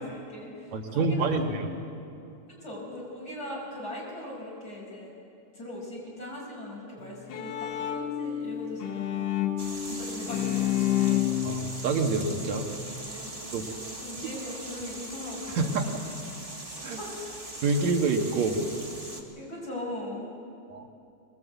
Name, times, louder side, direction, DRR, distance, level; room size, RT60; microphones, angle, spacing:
voice 1, 0.0-1.5 2.5-5.1 5.5-9.2 9.9-11.3 13.1-13.3 14.0-16.0 16.8-17.1 19.4-20.3, left 1 dB, 30° left, -3 dB, 5.6 m, -39 dB
voice 2, 0.7-1.4 11.4-12.7 13.5-13.7 14.2-14.3 15.6-15.9 16.8-17.0 17.6-18.6 20.7-20.9, right 4 dB, 70° right, 4 dB, 2.7 m, -27 dB
Bowed string instrument, 7.0-13.1, left 11 dB, 60° left, 2.0 m, -30 dB
sound 1, 9.6-19.2, right 1 dB, 15° right, 1.5 m, -41 dB
22.0 x 19.5 x 8.1 m, 2.6 s
omnidirectional pair, 3.3 m